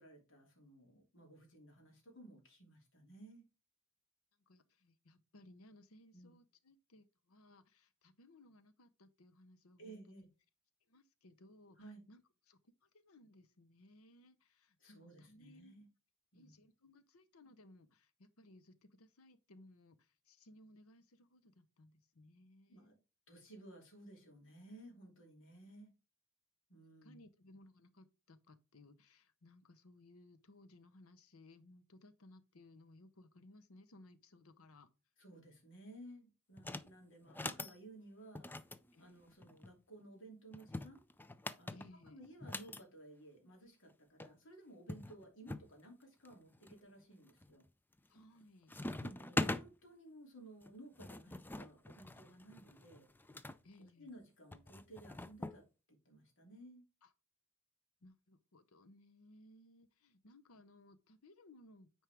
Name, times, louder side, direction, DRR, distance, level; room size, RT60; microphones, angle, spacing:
voice 1, 0.0-3.4 6.1-6.4 9.8-10.3 11.8-12.0 14.8-15.9 16.3-16.5 22.7-22.9 23.3-25.9 26.7-27.2 35.2-38.5 39.0-41.0 41.6-47.6 48.9-53.1 53.8-56.8, right 1 dB, 60° left, 2.8 m, -57 dB
voice 2, 4.5-10.2 10.9-11.8 12.1-12.2 12.5-15.9 16.3-23.0 27.0-34.9 38.9-39.3 41.7-42.2 48.1-48.8 53.6-54.1 57.0-57.1 58.0-62.0, left 1 dB, 80° left, 0.9 m, -62 dB
sound 1, 36.6-36.9 37.3-37.8 38.4-39.7 40.5-42.8 43.9-44.0 44.2-44.3 44.9-45.7 46.2-46.8 47.3-47.7 48.0-48.4 48.7-49.7 50.6-53.6 54.5-55.6, left 2 dB, 10° left, 0.4 m, -43 dB
9.2 x 4.5 x 3.5 m
head